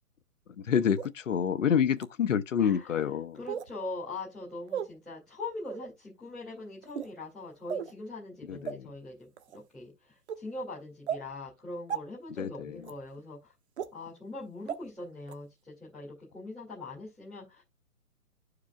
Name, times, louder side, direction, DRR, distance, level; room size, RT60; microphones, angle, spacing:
voice 1, 0.6-3.4 8.5-8.9 12.4-12.8, left 8 dB, 55° left, 0.6 m, -28 dB
sound 1, 1.0-1.1 2.0-2.1 3.5-3.7 4.7-4.9 5.7-5.9 6.8-7.1 7.7-7.9 8.7-8.8 9.4-9.6 10.3-10.4 11.1-11.2 11.9-12.0 12.8-12.9 13.8-13.9 14.7-14.8 15.3-15.4, right 8 dB, 45° right, 0.9 m, -34 dB
voice 2, 2.6-3.0 3.3-13.5 13.9-17.6, left 2 dB, ahead, 0.4 m, -42 dB
11.5 x 4.8 x 2.2 m
figure-of-eight pair, 130°, 46 cm